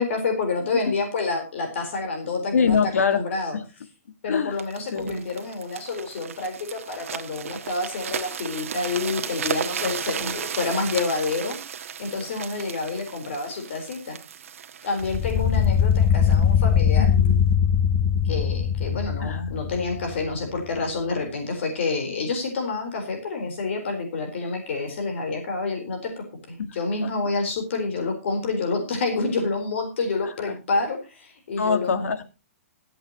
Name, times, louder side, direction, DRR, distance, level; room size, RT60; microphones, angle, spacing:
voice 1, 0.0-2.8 3.1-3.6 4.2-11.7 12.0-14.2 14.8-17.1 18.2-32.0, left 3 dB, 55° left, 4 dB, 4.2 m, -28 dB
voice 2, 2.5-3.2 3.5-3.6 4.3-4.6 4.9-5.2 9.8-10.4 17.0-17.5 19.2-19.5 27.0-27.1 30.2-30.6 31.6-32.2, left 5 dB, 80° left, 10 dB, 2.0 m, -25 dB
sound 1, 4.6-16.4 17.0-17.2, right 8 dB, 65° right, 1.4 m, -34 dB
sound 2, 15.0-20.3, left 8 dB, 15° left, 0.5 m, -21 dB
24.0 x 8.3 x 3.0 m, 0.29 s
hypercardioid pair, 170°, 8 cm